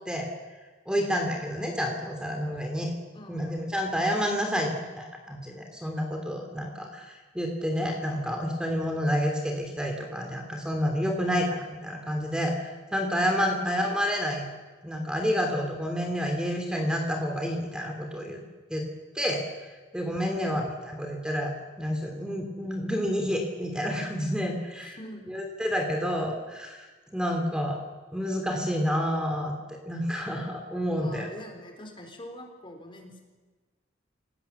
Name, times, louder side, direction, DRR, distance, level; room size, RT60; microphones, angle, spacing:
voice 1, 0.9-2.9 3.3-14.5 14.8-18.4 18.7-18.8 19.1-25.0 25.3-26.8 27.1-27.8 28.1-31.3, equal, 5° right, 2 dB, 2.9 m, -29 dB
voice 2, 3.1-3.7 13.6-13.7 20.3-20.6 24.8-25.3 31.0-33.2, left 1 dB, 25° left, 3 dB, 4.1 m, -44 dB
28.5 x 18.0 x 7.1 m, 1.3 s
head